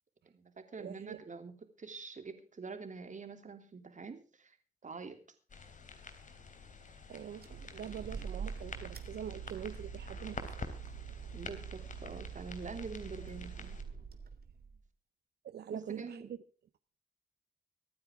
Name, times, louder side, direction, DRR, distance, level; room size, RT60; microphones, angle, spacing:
voice 1, 0.3-4.6 4.8-5.2 11.3-13.8 15.7-16.3, right 4 dB, 50° right, 3.0 m, -46 dB
voice 2, 0.8-1.2 7.1-10.7 15.4-16.4, right 9 dB, 85° right, 0.7 m, -44 dB
sound 1, 5.5-13.8, left 4 dB, 50° left, 3.2 m, -49 dB
sound 2, 7.4-14.8, right 7 dB, 70° right, 2.1 m, -45 dB
24.5 x 9.5 x 3.6 m
cardioid pair, 85°, 17 cm